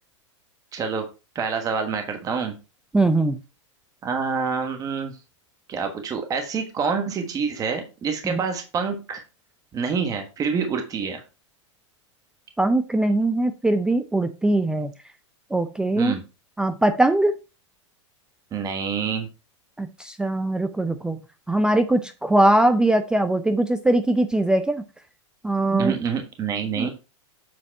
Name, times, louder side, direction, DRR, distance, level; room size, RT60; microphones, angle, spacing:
voice 1, 0.7-1.1 1.3-2.5 4.0-5.2 5.7-9.2 9.7-11.2 16.0-16.2 18.5-19.3 25.7-26.9, right 5 dB, 20° right, 5 dB, 1.3 m, -27 dB
voice 2, 2.9-3.4 8.3-8.4 12.6-14.9 15.5-16.1 16.6-17.3 19.8-21.2 21.5-24.8 25.4-25.9 26.8-26.9, right 1 dB, 5° right, 10 dB, 0.4 m, -21 dB
7.8 x 4.1 x 4.5 m, 0.30 s
hypercardioid pair, 125°, 16 cm